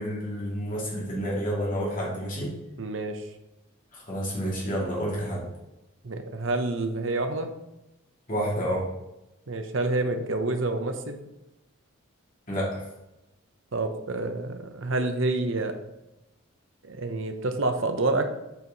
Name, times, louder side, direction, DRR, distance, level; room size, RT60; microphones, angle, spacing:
voice 1, 0.0-2.6 3.9-5.5 8.3-8.9 12.5-12.9, equal, 40° left, -5 dB, 2.5 m, -29 dB
voice 2, 2.8-3.3 6.0-7.5 9.5-11.2 13.7-15.7 16.8-18.3, right 2 dB, 60° right, 6 dB, 0.8 m, -28 dB
8.2 x 4.7 x 3.9 m, 0.94 s
head